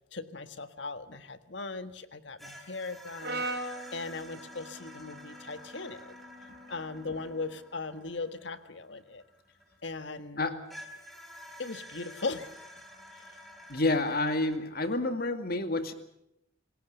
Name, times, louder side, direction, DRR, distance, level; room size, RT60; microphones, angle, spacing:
voice 1, 0.1-3.5 3.9-6.1 6.7-9.2 9.8-10.4 11.6-12.5, left 3 dB, 65° left, 10 dB, 1.6 m, -38 dB
sound 1, 2.4-10.1 10.7-14.6, equal, ahead, 4.0 m, -50 dB
Brass instrument, 3.2-7.5, right 2 dB, 55° right, 4.5 m, -41 dB
voice 2, 13.7-15.9, left 2 dB, 50° left, 8 dB, 2.3 m, -29 dB
27.5 x 19.0 x 6.8 m, 0.80 s
head